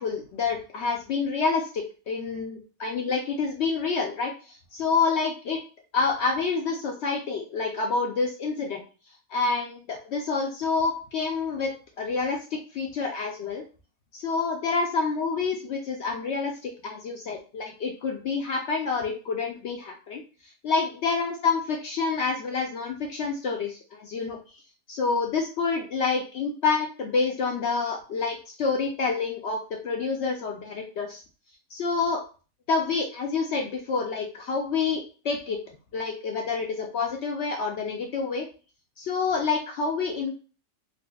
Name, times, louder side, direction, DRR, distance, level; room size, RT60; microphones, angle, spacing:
voice 1, 0.0-5.6 5.9-8.8 9.3-11.7 12.0-13.6 14.1-24.4 24.9-31.2 31.7-32.2 32.7-35.6 35.9-38.5 39.0-40.3, left 4 dB, 80° left, 1 dB, 0.6 m, -28 dB
4.0 x 2.4 x 2.2 m, 0.36 s
omnidirectional pair, 1.7 m